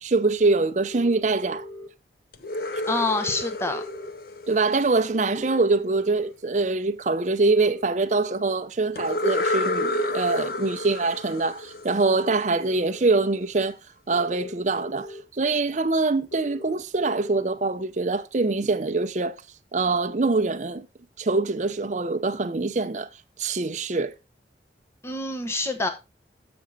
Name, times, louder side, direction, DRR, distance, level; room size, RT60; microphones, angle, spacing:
voice 1, 0.0-1.7 4.5-13.8 14.1-19.4 19.7-20.9 21.2-23.1 23.4-24.1, right 3 dB, 40° right, 0.6 m, -24 dB
sound 1, 0.9-1.9 3.0-4.1 5.2-6.3 7.4-8.5 9.6-10.8 11.9-13.0 14.1-15.2 16.3-17.4, left 1 dB, 85° left, 1.8 m, -40 dB
sound 2, 2.3-5.3 9.0-12.7, left 2 dB, 55° left, 0.6 m, -30 dB
voice 2, 2.9-3.8 25.0-25.9, left 2 dB, 15° left, 0.8 m, -26 dB
7.0 x 6.1 x 4.0 m
head